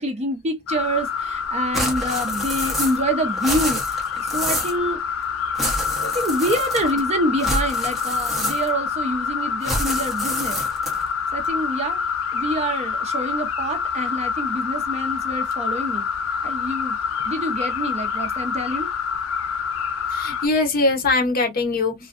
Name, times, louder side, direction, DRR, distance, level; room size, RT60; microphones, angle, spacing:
voice 1, 0.0-4.0 4.3-5.0 6.0-10.6 11.3-12.0 12.3-16.1 16.4-17.0 17.3-18.9, right 1 dB, 35° right, 0.5 m, -26 dB
sound 1, 0.7-20.5, left 6 dB, 80° left, 0.4 m, -27 dB
sound 2, 1.7-3.1 3.3-4.8 5.5-7.0 7.4-8.9 9.6-11.1, equal, ahead, 1.0 m, -28 dB
voice 2, 20.1-21.9, left 3 dB, 45° left, 0.7 m, -22 dB
2.5 x 2.1 x 2.4 m
head